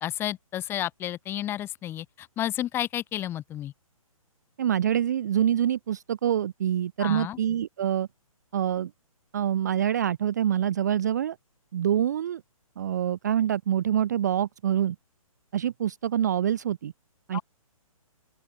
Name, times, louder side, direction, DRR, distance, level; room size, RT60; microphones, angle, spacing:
voice 1, 0.0-3.7 7.0-7.4 17.3-17.4, left 12 dB, 10° left, 2.3 m, -31 dB
voice 2, 4.6-8.1 8.5-8.9 9.3-11.4 11.7-12.4 12.8-15.0 15.5-16.9 17.3-17.4, right 10 dB, 30° right, 0.4 m, -26 dB
open air
hypercardioid pair, 165°, 18 cm